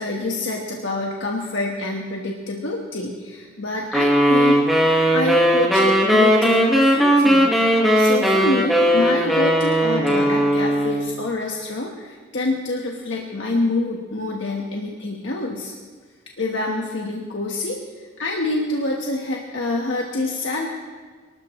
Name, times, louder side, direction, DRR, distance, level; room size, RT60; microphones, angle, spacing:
voice 1, 0.0-7.6 7.9-15.7 16.4-17.8 18.2-20.7, left 2 dB, 75° left, -1 dB, 1.5 m, -26 dB
sound 1, 3.9-11.1, equal, ahead, 1.7 m, -17 dB
24.0 x 13.0 x 3.2 m, 1.5 s
head